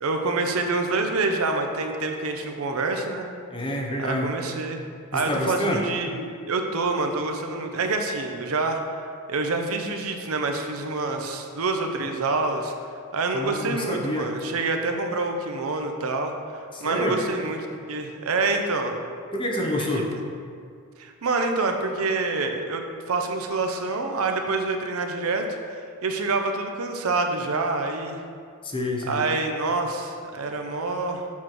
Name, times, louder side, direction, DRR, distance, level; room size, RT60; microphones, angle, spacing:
voice 1, 0.0-3.3 4.0-4.8 5.1-8.8 9.3-12.7 13.1-18.9 19.8-20.0 21.0-22.8 23.1-25.4 25.7-28.2 29.1-31.3, right 3 dB, 70° right, 4 dB, 0.6 m, -27 dB
voice 2, 3.5-4.3 5.1-5.8 13.3-14.3 16.7-17.2 19.3-20.1 28.6-29.2, left 1 dB, 25° left, 0 dB, 0.7 m, -27 dB
7.2 x 3.2 x 5.9 m, 2.2 s
head